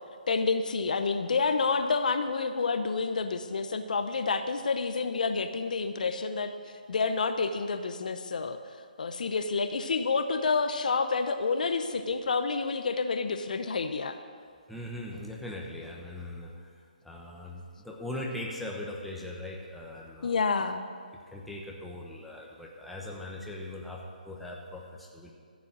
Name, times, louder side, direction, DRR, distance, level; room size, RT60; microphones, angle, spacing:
voice 1, 0.3-8.6 9.0-14.2 20.2-20.9, left 4 dB, 60° left, 8 dB, 0.8 m, -29 dB
voice 2, 14.7-16.7 17.0-20.4 21.3-25.3, left 1 dB, ahead, -2 dB, 1.0 m, -40 dB
13.5 x 7.6 x 6.1 m, 2.1 s
figure-of-eight pair, 150°, 5 cm